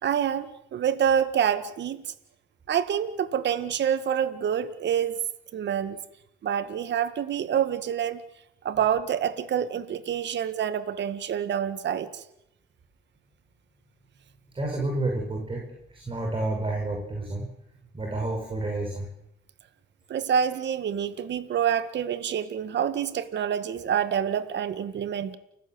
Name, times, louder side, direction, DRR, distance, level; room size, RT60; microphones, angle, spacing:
voice 1, 0.0-2.0 2.7-5.2 5.5-6.0 6.4-8.2 8.6-12.2 20.1-25.4, right 8 dB, 65° right, 14 dB, 1.7 m, -27 dB
voice 2, 14.5-17.5 17.9-19.1, right 2 dB, 25° right, 1 dB, 5.9 m, -30 dB
29.5 x 15.5 x 7.9 m, 0.79 s
cardioid pair, 90°, 20 cm